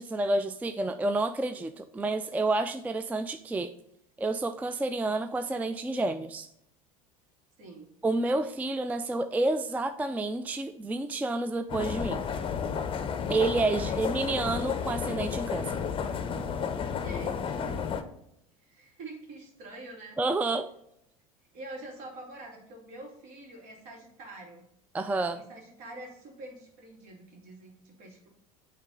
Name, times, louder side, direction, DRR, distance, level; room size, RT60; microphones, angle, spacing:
voice 1, 0.0-3.7 4.2-6.5 8.0-12.2 13.3-15.8 20.2-20.7 24.9-25.4, right 2 dB, 10° right, 10 dB, 0.3 m, -29 dB
voice 2, 7.6-7.9 13.7-14.2 16.9-17.8 18.6-20.2 21.5-24.6 25.3-28.3, right 2 dB, 55° right, 1 dB, 2.3 m, -46 dB
sound 1, 11.7-18.0, left 6 dB, 30° left, 0.7 m, -32 dB
8.8 x 3.4 x 3.8 m, 0.77 s
hypercardioid pair, 75°, 18 cm